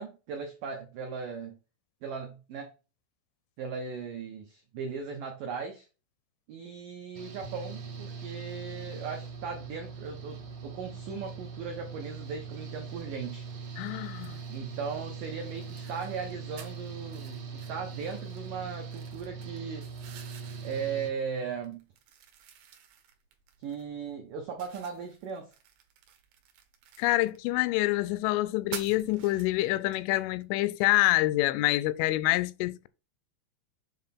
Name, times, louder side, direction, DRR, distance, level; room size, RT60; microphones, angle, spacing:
voice 1, 0.0-1.6 2.0-2.7 3.6-5.9 6.5-13.5 14.5-19.9 20.6-21.8 23.6-25.5, right 6 dB, 85° right, 1.9 m, -38 dB
Engine / Mechanical fan, 7.1-21.1, right 5 dB, 55° right, 2.6 m, -41 dB
voice 2, 13.8-14.4 27.0-32.9, left 18 dB, 90° left, 3.0 m, -26 dB
sound 1, 13.8-32.2, right 9 dB, 70° right, 2.4 m, -51 dB
7.8 x 3.6 x 5.9 m
omnidirectional pair, 5.4 m